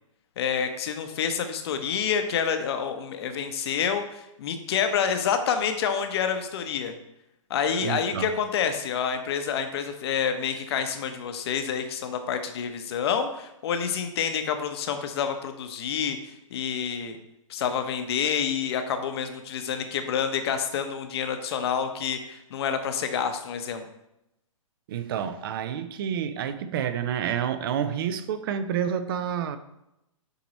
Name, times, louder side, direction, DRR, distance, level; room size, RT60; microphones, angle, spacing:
voice 1, 0.4-6.9 7.5-16.2 16.5-17.2 17.5-23.8, left 7 dB, 50° left, 8 dB, 0.8 m, -28 dB
voice 2, 7.8-8.3 24.9-29.6, right 8 dB, 45° right, 11 dB, 0.5 m, -29 dB
7.9 x 2.9 x 4.1 m, 0.86 s
hypercardioid pair, 140°, 17 cm